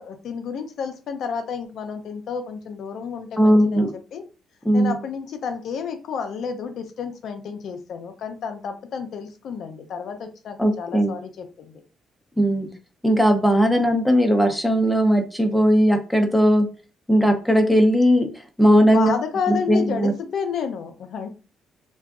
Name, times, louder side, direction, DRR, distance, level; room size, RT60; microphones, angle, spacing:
voice 1, 0.0-4.2 4.7-11.8 18.9-21.3, left 6 dB, 70° left, 6 dB, 0.4 m, -31 dB
voice 2, 3.4-3.9 4.7-5.0 10.6-11.2 12.4-12.7 13.0-16.7 17.1-18.3 18.6-19.1 19.5-20.1, equal, ahead, 4 dB, 0.5 m, -18 dB
2.6 x 2.2 x 2.3 m, 0.33 s
cardioid pair, 90°, 0 cm